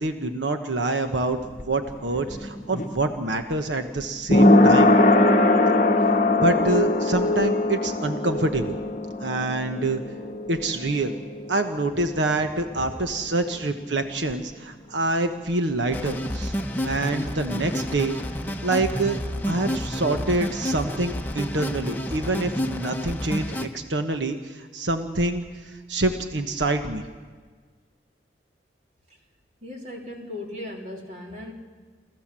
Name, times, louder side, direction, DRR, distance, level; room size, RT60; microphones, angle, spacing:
voice 1, 0.0-1.4 1.7-4.9 6.4-8.8 9.2-10.0 10.5-11.1 11.5-16.5 16.8-18.2 18.6-19.2 19.5-27.1, right 2 dB, 90° right, 6 dB, 1.2 m, -26 dB
sound 1, 1.2-12.7 13.0-13.1, left 2 dB, 40° left, 1.0 m, -21 dB
sound 2, 15.9-23.7, equal, 10° left, 1.1 m, -30 dB
voice 2, 29.6-31.5, left 1 dB, 40° right, 0 dB, 3.3 m, -37 dB
28.5 x 15.0 x 7.5 m, 1.5 s
head